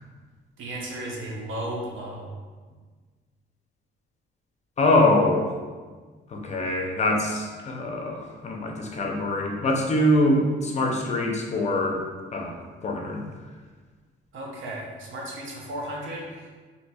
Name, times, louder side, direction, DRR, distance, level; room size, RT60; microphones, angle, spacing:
voice 1, 0.6-2.3 14.3-16.6, right 1 dB, 80° right, -2 dB, 0.8 m, -35 dB
voice 2, 4.8-5.5 6.3-12.0 12.3-12.5 12.8-13.2, left 1 dB, 35° left, 1 dB, 0.5 m, -23 dB
4.1 x 2.7 x 2.3 m, 1.4 s
cardioid pair, 125°, 20 cm